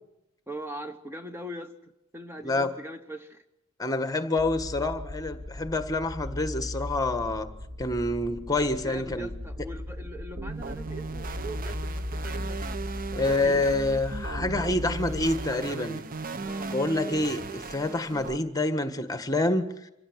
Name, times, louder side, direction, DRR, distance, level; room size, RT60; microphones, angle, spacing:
voice 1, 0.5-3.4 8.8-12.8 13.1-13.6 15.5-16.0 16.4-17.3, right 1 dB, 10° right, 1.1 m, -41 dB
voice 2, 3.8-7.5 7.8-9.3 13.1-16.0 16.7-19.7, left 2 dB, 20° left, 1.6 m, -27 dB
sound 1, 4.4-15.5, left 1 dB, 65° right, 3.8 m, -37 dB
sound 2, 10.4-18.4, right 4 dB, 45° right, 0.8 m, -37 dB
26.5 x 16.5 x 8.1 m
head